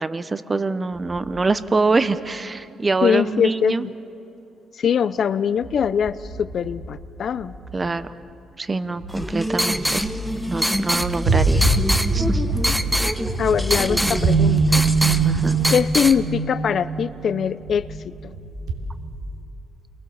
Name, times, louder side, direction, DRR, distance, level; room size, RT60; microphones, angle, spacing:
voice 1, 0.0-3.9 7.7-8.1 8.6-10.1 10.5-11.7 12.1-12.4 15.2-15.6, right 3 dB, 25° right, 13 dB, 1.0 m, -24 dB
sound 1, 1.1-1.2 5.6-7.9 9.0-9.3 9.7-10.5 10.9-18.0 18.3-19.4, right 3 dB, 85° right, 3.3 m, -23 dB
voice 2, 3.0-3.9 4.7-7.5 13.4-14.6 15.7-18.1, left 7 dB, 55° left, 15 dB, 0.8 m, -22 dB
sound 2, 9.1-16.2, equal, ahead, 1.2 m, -25 dB
29.0 x 23.0 x 7.3 m, 2.8 s
cardioid pair, 90°, 0 cm